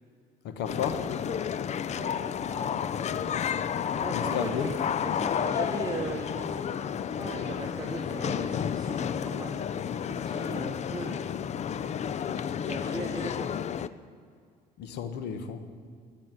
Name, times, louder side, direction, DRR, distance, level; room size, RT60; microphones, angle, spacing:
voice 1, 0.4-1.0 4.1-4.7 14.8-15.6, left 8 dB, 85° left, 9 dB, 1.5 m, -32 dB
sound 1, 0.7-13.9, left 8 dB, 40° left, 0.6 m, -31 dB
voice 2, 1.8-3.4 4.0-4.7 5.0-6.7 7.2-9.6 10.1-11.3 12.6-13.5, right 3 dB, 25° right, 1 dB, 1.6 m, -38 dB
14.5 x 9.6 x 9.7 m, 2.2 s
cardioid pair, 110°, 17 cm